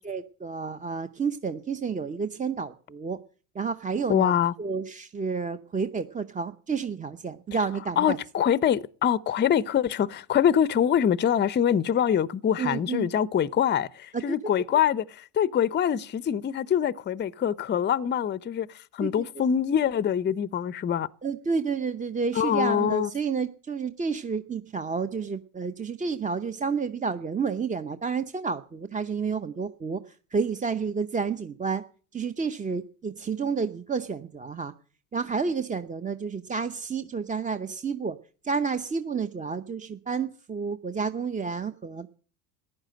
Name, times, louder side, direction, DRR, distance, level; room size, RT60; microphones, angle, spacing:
voice 1, 0.1-3.2 3.5-4.3 4.6-8.2 12.6-13.1 19.0-19.1 21.2-31.8 32.1-34.7 35.1-38.2 38.4-42.1, right 5 dB, 15° right, 0.8 m, -30 dB
voice 2, 4.1-4.5 8.0-21.1 22.3-23.1, left 9 dB, 25° left, 0.6 m, -24 dB
14.5 x 11.0 x 7.7 m
supercardioid pair, 100°, 45 cm